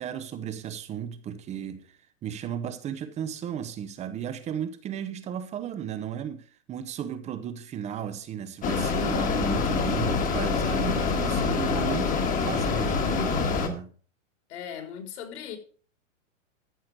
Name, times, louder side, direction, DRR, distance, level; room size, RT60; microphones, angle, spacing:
voice 1, 0.0-1.9 2.2-13.9, right 9 dB, 15° right, 0.9 m, -35 dB
Mechanisms, 8.6-13.7, left 5 dB, 20° left, 1.8 m, -26 dB
voice 2, 14.5-15.6, left 8 dB, 60° left, 3.7 m, -38 dB
14.0 x 6.5 x 6.1 m
hypercardioid pair, 150°, 39 cm